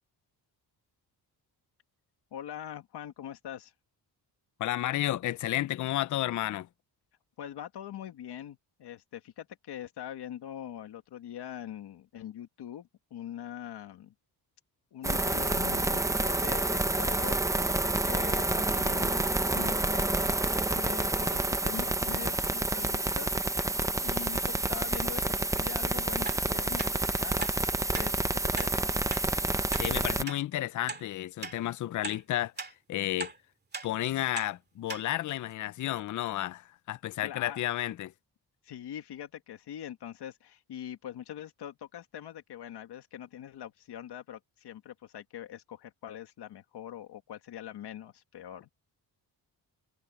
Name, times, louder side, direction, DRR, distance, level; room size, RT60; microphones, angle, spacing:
voice 1, 2.3-3.7 7.4-14.1 14.9-17.8 18.0-20.4 20.7-23.8 24.0-26.9 27.2-28.8 37.2-37.6 38.6-48.7, left 10 dB, 80° left, 1.8 m, -43 dB
voice 2, 4.6-6.7 29.8-33.3 33.8-38.1, left 14 dB, 50° left, 0.5 m, -32 dB
sound 1, 15.0-30.2, right 2 dB, 10° right, 0.5 m, -29 dB
sound 2, 26.3-26.4 26.8-26.9 27.4-27.6 27.9-28.1 28.6-28.7 29.1-29.2 29.7-29.9 30.3-30.4 30.9-31.0 31.4-31.6 32.0-32.2 32.6-32.7 33.2-33.4 33.7-33.9 34.4-34.5 34.9-35.0 35.5-35.6, right 4 dB, 25° right, 2.2 m, -38 dB
wide cardioid pair, 170°, 39 cm